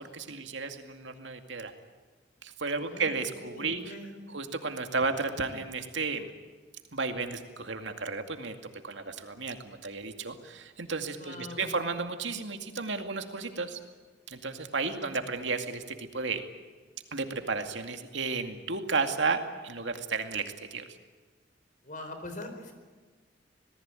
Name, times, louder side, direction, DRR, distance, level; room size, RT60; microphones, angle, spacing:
voice 1, 0.0-1.7 2.4-3.9 4.3-6.3 6.9-8.6 8.8-13.8 14.3-16.4 17.1-20.9, right 4 dB, 75° right, 6 dB, 2.3 m, -33 dB
voice 2, 2.8-4.3 11.2-11.7 21.8-22.7, left 1 dB, 45° left, 7 dB, 4.2 m, -43 dB
27.5 x 19.0 x 9.1 m, 1.4 s
head